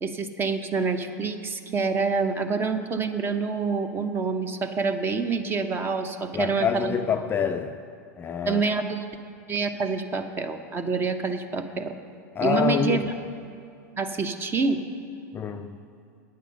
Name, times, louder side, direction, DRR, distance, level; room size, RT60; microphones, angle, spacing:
voice 1, 0.0-7.0 8.5-9.0 9.5-12.0 12.4-13.1 14.0-14.8, right 4 dB, 25° right, 0.8 m, -27 dB
voice 2, 6.3-7.8 8.2-8.6 12.3-13.0 15.3-15.8, left 7 dB, 25° left, 0.4 m, -26 dB
9.4 x 8.4 x 6.3 m
hypercardioid pair, 110°, 9 cm